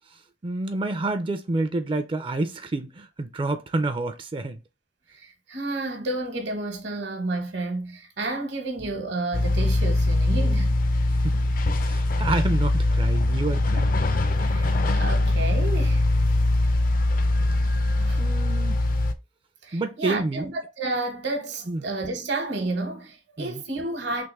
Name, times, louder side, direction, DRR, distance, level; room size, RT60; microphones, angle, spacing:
voice 1, 0.4-4.6 11.1-11.4 11.8-14.0 18.2-18.8 19.7-20.5 21.7-21.8 23.4-23.6, right 2 dB, 30° right, 0.4 m, -28 dB
voice 2, 5.1-10.8 14.4-16.1 18.0-18.2 19.6-24.3, right 2 dB, 70° right, 1.0 m, -31 dB
sound 1, 9.3-19.1, left 2 dB, 50° left, 0.5 m, -22 dB
3.5 x 2.9 x 3.1 m
head